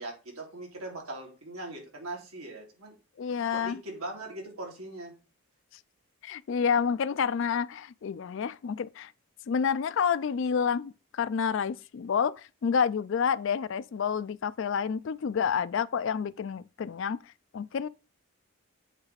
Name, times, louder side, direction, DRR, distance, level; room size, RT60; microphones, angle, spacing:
voice 1, 0.0-2.9 3.5-5.1, right 2 dB, 85° right, 2.8 m, -40 dB
voice 2, 3.2-3.8 6.2-9.1 9.5-17.2 17.5-17.9, left 6 dB, 60° left, 0.3 m, -29 dB
8.1 x 3.3 x 5.7 m
head